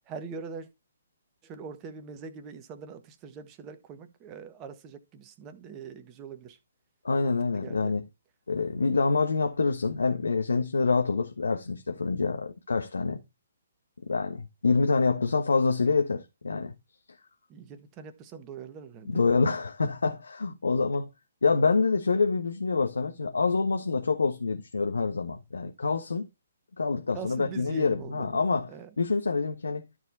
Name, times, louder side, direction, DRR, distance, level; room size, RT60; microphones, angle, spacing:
voice 1, 0.1-0.7 1.4-6.6 7.2-8.0 17.5-19.3 27.1-28.4 28.7-28.9, right 5 dB, 25° right, 1.4 m, -42 dB
voice 2, 7.0-8.0 8.5-13.2 14.0-16.7 19.1-21.1 21.4-26.3 26.8-28.7 29.0-29.8, left 4 dB, 75° left, 1.3 m, -26 dB
13.0 x 4.7 x 4.2 m
figure-of-eight pair, 135°, 0 cm